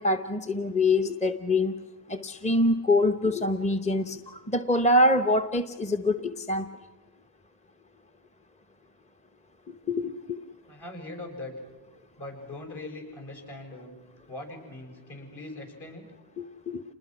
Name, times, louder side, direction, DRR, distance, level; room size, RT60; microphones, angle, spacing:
voice 1, 0.0-1.7 2.1-6.7 9.7-10.4 16.4-16.8, left 2 dB, 15° left, 8 dB, 0.9 m, -25 dB
voice 2, 10.7-11.5 12.2-14.0 14.3-16.1, left 2 dB, 50° left, 2 dB, 7.4 m, -41 dB
28.0 x 20.5 x 6.2 m, 1.3 s
cardioid pair, 65°, 49 cm